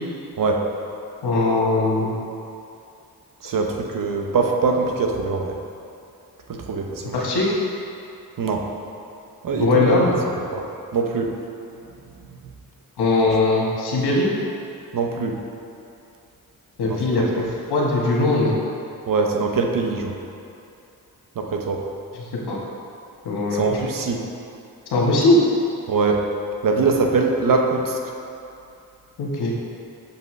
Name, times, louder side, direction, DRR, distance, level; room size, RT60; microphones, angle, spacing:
voice 1, 1.2-2.1 7.1-7.6 9.5-10.1 13.0-14.3 16.8-18.6 22.3-22.6 23.2-23.6 24.9-25.4 29.2-29.5, left 2 dB, 75° left, -4 dB, 1.3 m, -20 dB
voice 2, 3.4-5.6 6.5-7.2 8.4-8.7 9.4-10.0 10.5-10.6 10.9-11.3 14.9-15.4 16.9-17.0 19.1-20.1 21.4-21.8 23.5-24.2 25.9-26.2 26.6-28.0, right 4 dB, 55° right, 2 dB, 0.8 m, -22 dB
6.5 x 5.4 x 3.2 m, 2.6 s
cardioid pair, 55°, 39 cm